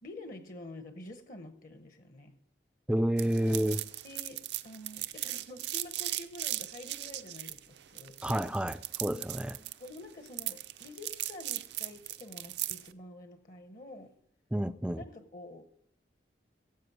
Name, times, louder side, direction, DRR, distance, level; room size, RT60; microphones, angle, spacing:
voice 1, 0.0-2.4 4.0-8.2 9.8-14.1 15.0-15.6, left 2 dB, 50° left, 0.8 m, -48 dB
voice 2, 2.9-3.8 8.2-9.6 14.5-15.0, equal, 5° right, 0.3 m, -29 dB
sound 1, 3.2-12.9, right 15 dB, 70° right, 0.5 m, -38 dB
16.0 x 7.6 x 4.8 m
head